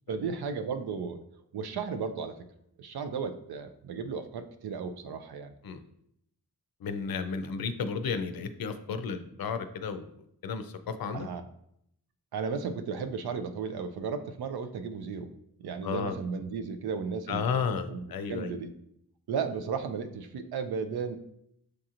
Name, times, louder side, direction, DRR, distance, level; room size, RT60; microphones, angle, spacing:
voice 1, 0.1-1.2 1.5-2.5 2.8-5.5 11.1-11.4 12.3-15.3 15.6-18.7 19.3-21.2, right 5 dB, 85° right, 9 dB, 0.5 m, -35 dB
voice 2, 6.8-10.1 10.4-11.3 15.8-16.1 17.3-18.5, left 5 dB, 70° left, 9 dB, 0.5 m, -33 dB
6.4 x 2.8 x 2.5 m, 0.74 s
cardioid pair, 65°, 37 cm